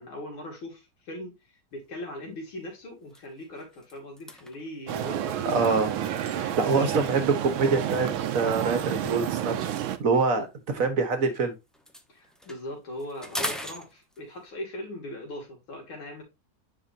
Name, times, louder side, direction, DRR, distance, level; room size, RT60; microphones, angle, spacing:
voice 1, 0.0-1.3 1.7-5.5 6.0-6.9 10.3-10.5 12.1-16.2, left 1 dB, 85° left, 3.4 m, -40 dB
sound 1, 1.8-2.1 2.5-2.7 3.0-6.9 7.8-11.4 11.7-14.5, equal, ahead, 0.3 m, -42 dB
sound 2, 4.9-10.0, right 10 dB, 80° right, 1.6 m, -30 dB
voice 2, 5.4-5.9 6.2-9.7 10.0-10.5 10.7-11.5, right 4 dB, 45° right, 1.5 m, -25 dB
9.4 x 5.0 x 2.7 m
omnidirectional pair, 2.2 m